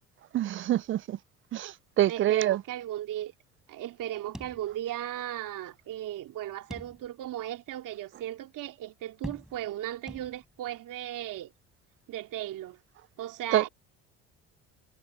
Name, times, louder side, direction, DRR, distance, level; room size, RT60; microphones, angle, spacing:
voice 1, 0.3-1.2 1.5-2.6 13.5-13.7, right 13 dB, 35° right, 0.4 m, -26 dB
voice 2, 2.1-3.3 3.7-11.5 12.1-12.8 13.2-13.7, right 13 dB, 60° right, 2.7 m, -36 dB
sound 1, 4.3-5.2 5.5-5.6 6.7-7.4 7.9-8.0 9.2-9.8 10.1-10.7, equal, ahead, 8.0 m, -44 dB
hypercardioid pair, 70°, 36 cm